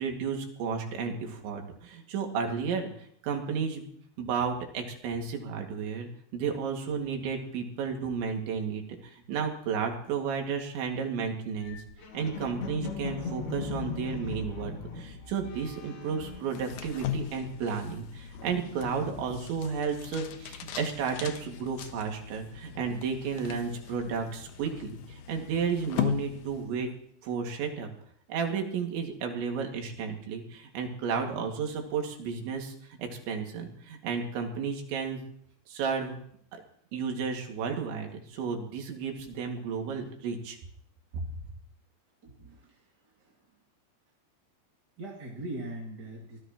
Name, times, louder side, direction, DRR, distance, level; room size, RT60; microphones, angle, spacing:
voice 1, 0.0-2.9 3.2-3.8 4.2-11.8 12.1-26.9 27.2-27.9 28.3-32.7 33.0-35.2 35.7-36.2 36.5-36.6 36.9-40.6 41.1-41.2, right 6 dB, 85° right, 2 dB, 4.5 m, -32 dB
sound 1, 11.6-17.2 17.5-19.7, left 5 dB, 60° left, 4.1 m, -40 dB
sound 2, 16.4-27.0, left 9 dB, 80° left, 1.9 m, -38 dB
voice 2, 42.2-43.3 45.0-46.4, right 1 dB, 30° right, -3 dB, 2.2 m, -41 dB
24.5 x 18.0 x 3.0 m, 0.65 s
omnidirectional pair, 5.1 m